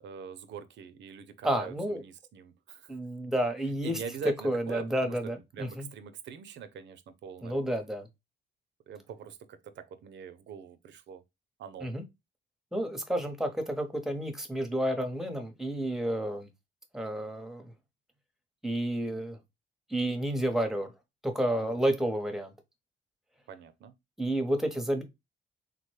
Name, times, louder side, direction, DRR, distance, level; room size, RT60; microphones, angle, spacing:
voice 1, 0.0-2.9 3.8-5.2 5.5-7.6 8.9-11.2 11.6-11.9 21.6-21.7 23.5-23.9, right 7 dB, 65° right, 0.5 m, -43 dB
voice 2, 1.4-2.0 2.9-4.0 4.4-5.9 7.4-8.1 11.8-12.0 12.7-16.5 16.9-17.7 18.6-19.4 19.9-20.9 21.2-22.5 24.2-25.0, right 1 dB, ahead, 0.8 m, -30 dB
3.6 x 2.1 x 3.1 m
cardioid pair, 90°, 20 cm